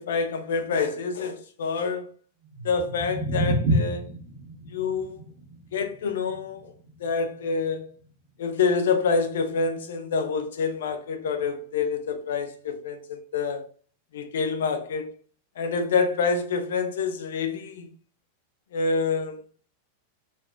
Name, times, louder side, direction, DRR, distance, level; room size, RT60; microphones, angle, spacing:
voice 1, 0.0-2.1 2.6-4.1 4.7-5.2 5.7-6.7 7.0-7.8 8.4-13.6 14.1-15.1 15.6-17.9 18.7-19.4, left 5 dB, 60° left, 0.5 m, -27 dB
sound 1, 2.4-8.6, equal, 55° right, 0.9 m, -30 dB
4.1 x 2.1 x 2.5 m
figure-of-eight pair, 90°, 0 cm